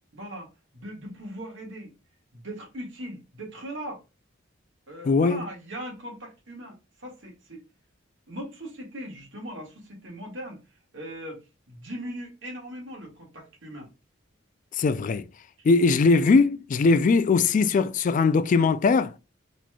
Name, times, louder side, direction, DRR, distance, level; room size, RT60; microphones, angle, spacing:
voice 1, 0.1-1.9 2.3-4.0 4.9-7.6 8.3-13.9, equal, 75° right, 1.7 m, -39 dB
voice 2, 5.1-5.4 14.8-15.3 15.6-19.1, left 4 dB, 40° left, 0.3 m, -20 dB
4.0 x 3.1 x 2.3 m
head